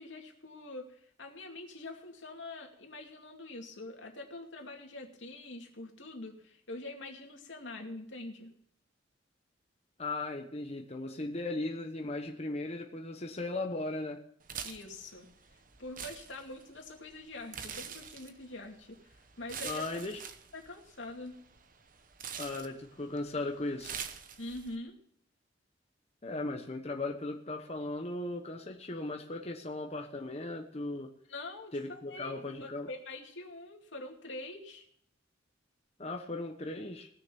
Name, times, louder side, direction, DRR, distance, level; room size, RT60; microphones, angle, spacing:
voice 1, 0.0-8.5 14.6-15.3 15.8-19.9 20.5-21.4 24.4-25.0 31.3-32.3 32.6-34.9, left 2 dB, 85° left, 2 dB, 2.5 m, -44 dB
voice 2, 10.0-14.2 19.6-20.2 22.4-23.9 26.2-31.1 31.7-32.9 36.0-37.1, left 2 dB, 35° left, 3 dB, 1.1 m, -37 dB
sound 1, 14.4-24.8, right 7 dB, 45° right, 1.0 m, -46 dB
18.5 x 6.7 x 7.0 m, 0.66 s
head